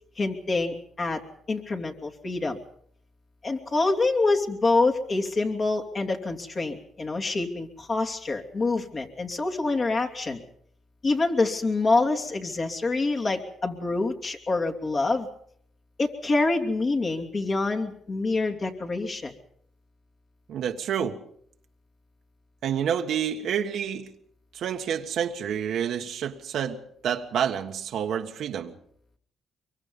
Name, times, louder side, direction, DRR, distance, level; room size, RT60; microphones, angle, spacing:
voice 1, 0.2-1.2 1.5-2.6 3.4-10.4 11.0-15.3 16.0-19.3, left 3 dB, 40° left, 3.0 m, -26 dB
voice 2, 20.5-21.2 22.6-24.1 24.5-28.7, right 8 dB, 70° right, 1.5 m, -29 dB
23.5 x 23.5 x 5.5 m
cardioid pair, 90°, 0 cm